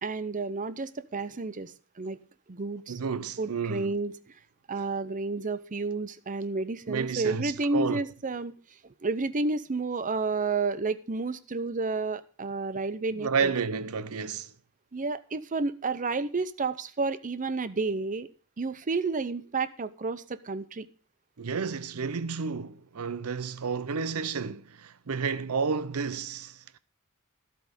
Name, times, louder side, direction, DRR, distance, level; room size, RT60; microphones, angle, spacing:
voice 1, 0.0-2.2 2.5-2.9 3.4-4.1 4.7-8.5 9.0-13.5 14.9-18.3 18.6-20.9, right 3 dB, 35° right, 0.7 m, -31 dB
voice 2, 2.9-4.0 6.9-8.0 13.1-14.5 21.4-26.8, right 5 dB, 70° right, 0.6 m, -31 dB
12.0 x 8.4 x 5.2 m
head